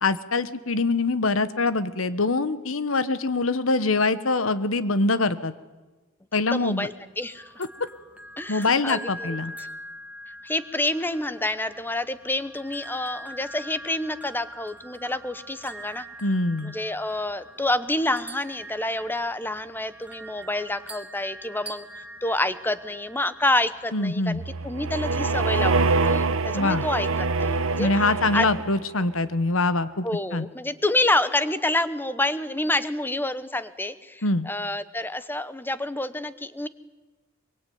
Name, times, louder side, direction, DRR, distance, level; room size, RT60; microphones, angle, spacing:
voice 1, 0.0-5.5 6.3-6.9 8.5-9.5 16.2-16.7 23.9-24.4 26.5-26.8 27.8-30.0 30.3-30.5 34.2-34.5, left 3 dB, 70° left, 14 dB, 1.3 m, -24 dB
voice 2, 6.5-7.5 8.4-9.7 10.4-16.1 16.6-27.1 27.4-27.9 28.3-28.5 30.0-36.7, left 1 dB, 10° left, 14 dB, 1.0 m, -28 dB
sound 1, 7.2-24.1, equal, 5° right, 2.0 m, -43 dB
sound 2, 24.3-29.0, right 3 dB, 75° right, 1.1 m, -25 dB
23.5 x 23.0 x 9.4 m, 1.2 s
head